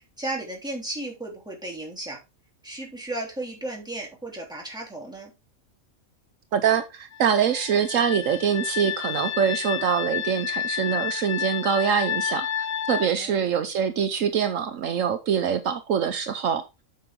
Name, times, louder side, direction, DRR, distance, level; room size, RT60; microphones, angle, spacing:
voice 1, 0.2-2.2 2.6-5.3 13.1-13.4, right 2 dB, 5° right, -3 dB, 3.4 m, -34 dB
voice 2, 6.5-12.5 12.9-16.6, right 7 dB, 70° right, 9 dB, 1.2 m, -24 dB
sound 1, 7.1-13.1, left 10 dB, 55° left, 1.0 m, -30 dB
8.2 x 6.6 x 3.7 m, 0.25 s
omnidirectional pair, 1.4 m